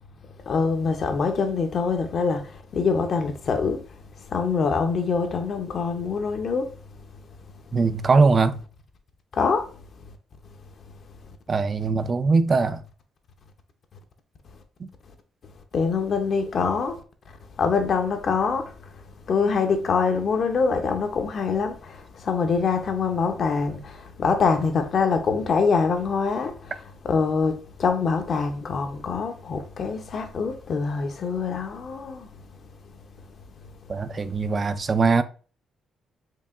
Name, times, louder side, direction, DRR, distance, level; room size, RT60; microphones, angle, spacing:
voice 1, 0.5-2.4 2.7-3.8 4.3-6.7 9.4-9.6 15.7-17.0 17.6-18.7 19.3-21.8 22.3-26.5 27.0-32.3, left 5 dB, 55° left, 0.7 m, -24 dB
voice 2, 7.7-8.6 11.5-12.8 14.8-14.9 33.9-35.2, right 4 dB, 35° right, 0.4 m, -21 dB
4.6 x 2.8 x 2.4 m
cardioid pair, 90°, 0 cm